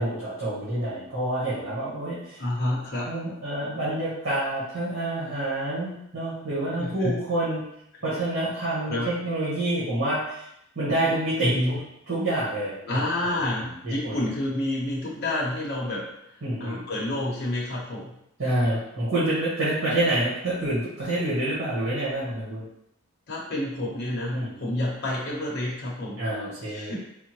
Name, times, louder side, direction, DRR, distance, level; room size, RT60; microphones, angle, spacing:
voice 1, 0.0-2.4 3.0-7.6 8.0-10.4 10.7-11.8 12.1-13.0 13.3-14.2 16.4-16.8 18.4-22.6 24.3-24.7 26.2-27.0, right 1 dB, 70° right, -10 dB, 1.3 m, -28 dB
voice 2, 2.4-3.1 6.8-7.2 8.9-9.1 11.4-11.8 12.8-16.1 16.6-18.1 23.3-26.2 26.7-27.0, left 1 dB, 50° left, -5 dB, 0.8 m, -29 dB
3.6 x 2.1 x 3.0 m, 0.78 s
head